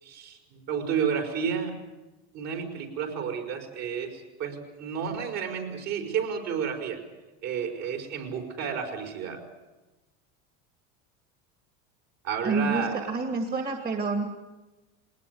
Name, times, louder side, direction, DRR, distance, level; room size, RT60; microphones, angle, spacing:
voice 1, 0.0-1.8 2.3-7.0 7.4-9.4 12.2-13.1, right 7 dB, 55° right, 5 dB, 5.2 m, -31 dB
voice 2, 12.4-14.3, right 3 dB, 30° right, 5 dB, 2.4 m, -28 dB
21.0 x 19.5 x 9.5 m, 1.1 s
supercardioid pair, 120°, 33 cm